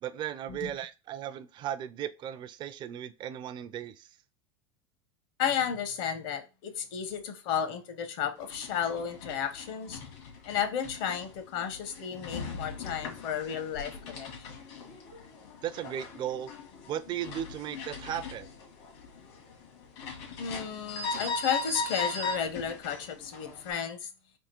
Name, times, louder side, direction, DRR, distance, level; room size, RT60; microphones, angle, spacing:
voice 1, 0.0-4.2 15.6-16.5 16.9-18.5, right 10 dB, 30° right, 0.4 m, -36 dB
voice 2, 5.4-10.0 10.5-14.4 20.4-24.1, left 8 dB, 60° left, 0.9 m, -33 dB
sound 1, 8.4-23.7, left 3 dB, 75° left, 1.6 m, -40 dB
3.6 x 2.8 x 4.4 m
supercardioid pair, 130°, 14 cm